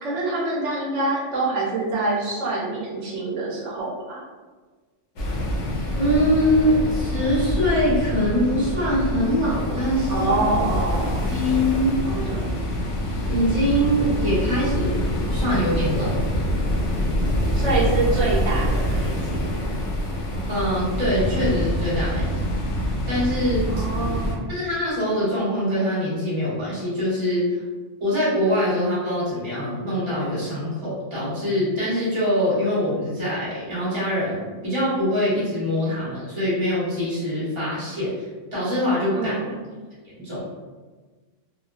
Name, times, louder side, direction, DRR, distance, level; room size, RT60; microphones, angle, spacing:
voice 1, 0.0-4.2 10.1-11.3 12.0-12.4 17.6-19.5 23.7-24.5 39.1-39.6, right 2 dB, 75° right, -5 dB, 0.9 m, -26 dB
sound 1, 5.2-24.3, equal, 80° left, 1.0 m, -25 dB
voice 2, 6.0-10.3 11.3-11.9 13.3-16.3 20.5-22.4 23.1-23.7 24.5-27.4 28.0-38.1 38.5-39.3 40.2-40.4, equal, 25° right, -9 dB, 1.1 m, -23 dB
3.0 x 2.2 x 2.3 m, 1.3 s
omnidirectional pair, 1.2 m